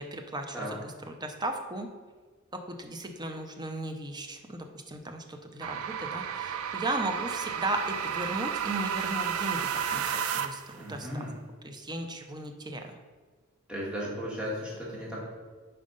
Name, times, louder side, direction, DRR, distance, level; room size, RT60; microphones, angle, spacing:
voice 1, 0.0-1.9 2.5-11.2 11.6-13.0, right 1 dB, 20° right, 5 dB, 0.6 m, -36 dB
sound 1, 5.6-10.8, right 8 dB, 90° right, 0.4 m, -32 dB
voice 2, 10.8-11.3 13.7-15.2, equal, 5° right, -6 dB, 1.6 m, -35 dB
5.1 x 4.3 x 5.4 m, 1.4 s
head